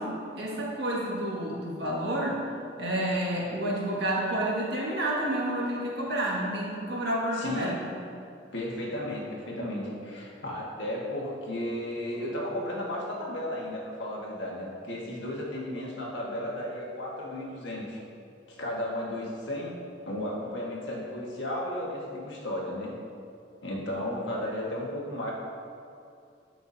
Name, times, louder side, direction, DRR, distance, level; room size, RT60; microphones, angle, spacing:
voice 1, 0.4-2.4 2.8-7.7, right 1 dB, 65° right, -5 dB, 1.9 m, -29 dB
voice 2, 7.3-7.8 8.5-18.0 18.5-19.8 20.0-22.9 23.6-25.3, left 1 dB, 80° left, -3 dB, 1.7 m, -34 dB
13.0 x 6.0 x 2.8 m, 2.5 s
head